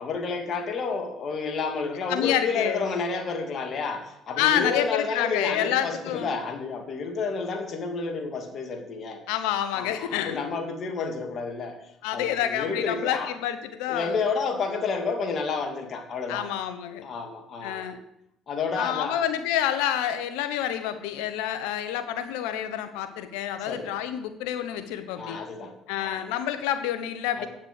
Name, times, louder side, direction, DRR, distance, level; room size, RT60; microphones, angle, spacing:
voice 1, 0.0-9.2 9.7-11.7 12.1-13.3 13.9-16.4 17.0-17.9 18.5-19.2 23.6-23.9 25.2-26.3 27.4-27.5, left 4 dB, 55° left, 4 dB, 2.5 m, -30 dB
voice 2, 2.1-2.8 4.4-6.4 9.3-10.4 12.0-14.2 16.3-17.1 17.6-18.0 18.8-25.4 25.9-27.5, left 11 dB, 80° left, 10 dB, 1.1 m, -28 dB
8.9 x 7.3 x 8.3 m, 0.80 s
supercardioid pair, 70°, 0 cm